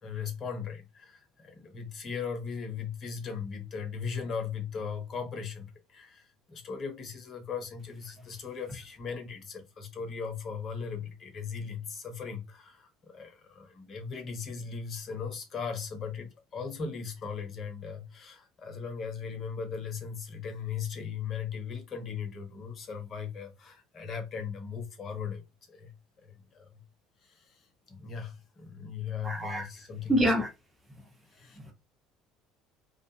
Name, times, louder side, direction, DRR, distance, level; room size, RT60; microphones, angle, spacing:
voice 1, 0.0-25.4 25.7-25.9 26.2-26.8 27.2-30.3 31.3-31.6, left 6 dB, 40° left, 0.8 m, -38 dB
voice 2, 29.2-29.7 30.1-30.5 31.6-31.7, equal, 15° right, 1.0 m, -26 dB
2.4 x 2.2 x 2.7 m
figure-of-eight pair, 60°, 0 cm